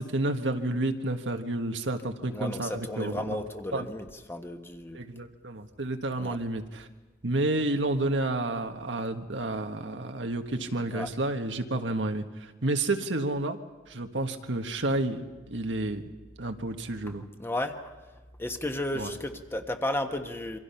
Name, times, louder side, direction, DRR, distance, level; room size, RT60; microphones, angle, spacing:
voice 1, 0.0-3.4 3.7-3.9 4.9-6.9 7.2-13.6 13.9-16.0 16.4-17.2 18.9-19.1, right 2 dB, 85° right, 6 dB, 1.5 m, -30 dB
voice 2, 2.3-5.0 6.2-6.4 10.9-11.1 17.4-17.9 18.4-20.6, left 1 dB, 15° left, 6 dB, 1.4 m, -33 dB
27.5 x 24.0 x 5.8 m, 1.3 s
head